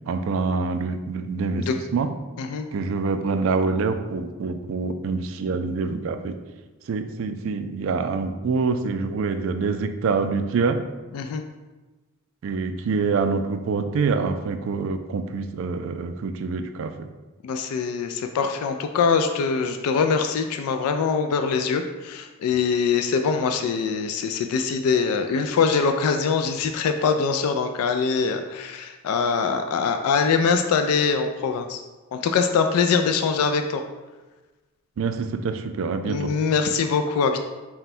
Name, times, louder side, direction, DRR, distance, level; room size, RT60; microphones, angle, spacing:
voice 1, 0.1-2.1 2.7-6.4 6.9-10.8 12.4-17.1 35.0-36.3, right 4 dB, 65° right, 8 dB, 0.3 m, -26 dB
voice 2, 17.4-31.8 32.1-33.8 36.0-37.4, left 5 dB, 90° left, 10 dB, 0.3 m, -23 dB
4.4 x 2.2 x 4.1 m, 1.2 s
head